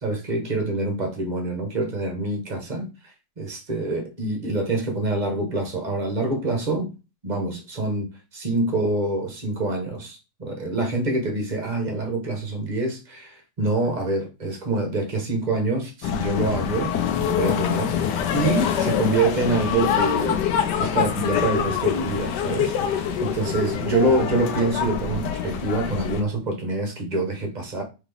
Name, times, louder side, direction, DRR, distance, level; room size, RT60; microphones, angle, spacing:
voice 1, 0.0-2.9 3.4-6.9 7.2-16.9 17.2-18.0 18.3-20.5 20.8-27.8, right 2 dB, 30° right, 1.0 m, -26 dB
sound 1, 16.0-26.2, left 8 dB, 80° left, 1.3 m, -25 dB
4.0 x 3.5 x 3.4 m
omnidirectional pair, 1.8 m